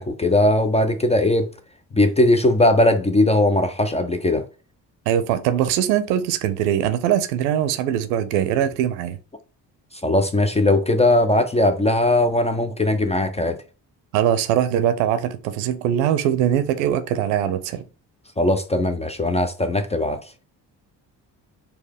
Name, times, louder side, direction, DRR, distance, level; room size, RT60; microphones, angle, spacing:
voice 1, 0.0-1.5 1.9-4.4 10.0-13.6 18.4-20.2, left 1 dB, 15° left, 0.4 m, -19 dB
voice 2, 5.1-9.2 14.1-17.8, right 10 dB, 75° right, 0.6 m, -21 dB
4.5 x 2.2 x 3.5 m
hypercardioid pair, 45°, 50 cm